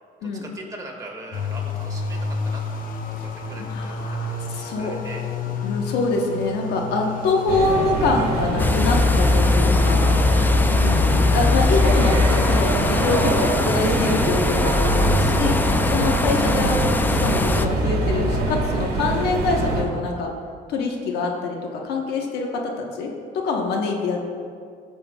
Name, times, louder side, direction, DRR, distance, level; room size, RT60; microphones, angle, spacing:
voice 1, 0.2-2.6 3.2-5.2 7.0-7.3 10.3-10.6, right 2 dB, 20° right, -1 dB, 1.9 m, -41 dB
sound 1, 1.3-13.1, left 3 dB, 55° left, 0.9 m, -32 dB
voice 2, 3.6-4.9 5.6-10.3 10.7-15.6 15.9-16.8 17.2-20.3 20.7-23.1 23.3-24.2, left 3 dB, 80° left, 1 dB, 1.2 m, -25 dB
sound 2, 7.5-19.8, right 3 dB, 65° right, 1.7 m, -24 dB
sound 3, 8.6-17.7, left 3 dB, 10° left, 0.4 m, -20 dB
15.5 x 6.8 x 2.4 m, 2.2 s
cardioid pair, 110°, 17 cm